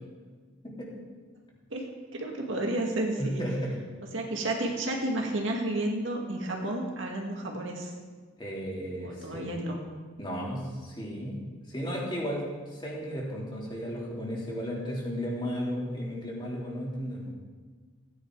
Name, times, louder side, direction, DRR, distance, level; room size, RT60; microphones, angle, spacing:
voice 1, 1.7-3.4 4.1-7.9 9.0-9.8, right 1 dB, 70° right, 0 dB, 2.0 m, -31 dB
voice 2, 3.2-3.8 8.4-9.5 10.2-11.4 11.7-17.3, equal, 25° left, -4 dB, 3.1 m, -34 dB
16.0 x 9.9 x 4.8 m, 1.5 s
head